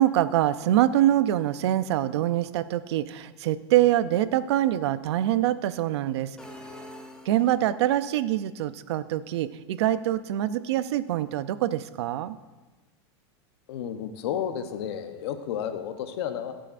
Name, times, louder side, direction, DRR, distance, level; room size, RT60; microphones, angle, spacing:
voice 1, 0.0-6.9 7.3-12.4, right 13 dB, 75° right, 15 dB, 0.5 m, -25 dB
sound 1, 6.4-8.0, left 1 dB, 5° left, 0.7 m, -45 dB
voice 2, 13.7-16.5, left 9 dB, 70° left, 8 dB, 0.9 m, -32 dB
20.5 x 7.5 x 2.5 m, 1.2 s
supercardioid pair, 155°, 14 cm